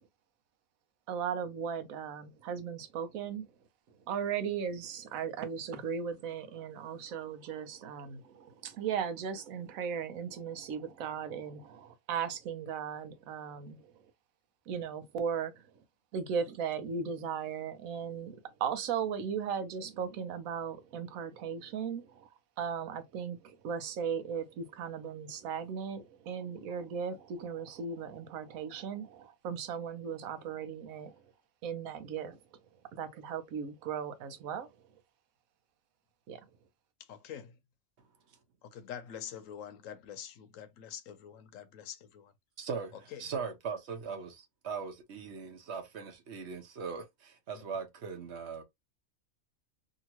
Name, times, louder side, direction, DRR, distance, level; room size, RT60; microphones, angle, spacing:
voice 1, 1.1-3.4 4.1-13.8 14.7-15.5 16.1-18.3 18.6-22.3 22.6-31.1 31.6-32.4 32.9-34.7 36.3-36.4, right 7 dB, 85° right, 1.1 m, -37 dB
voice 2, 37.1-37.5 38.6-42.3 43.1-43.2, left 9 dB, 75° left, 1.0 m, -45 dB
voice 3, 42.6-48.6, right 5 dB, 60° right, 1.0 m, -40 dB
2.8 x 2.7 x 2.9 m
omnidirectional pair, 1.4 m